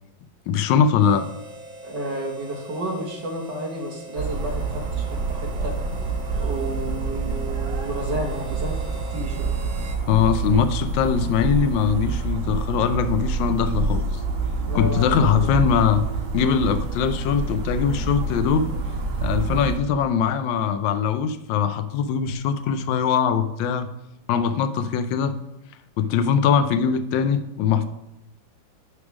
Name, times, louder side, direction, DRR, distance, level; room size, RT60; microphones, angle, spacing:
voice 1, 0.5-1.3 10.1-14.2 14.7-16.1 16.3-18.7 19.2-23.9 24.3-25.3 26.0-27.9, left 7 dB, 75° left, 10 dB, 1.2 m, -21 dB
Harmonica, 0.9-10.0, right 1 dB, 40° right, 1.6 m, -41 dB
voice 2, 1.8-5.8 6.4-9.5 14.7-15.5, right 1 dB, 60° right, 0 dB, 2.0 m, -31 dB
sound 1, 4.2-19.8, right 4 dB, 85° right, 2.1 m, -27 dB
9.7 x 3.4 x 6.1 m, 0.88 s
omnidirectional pair, 2.2 m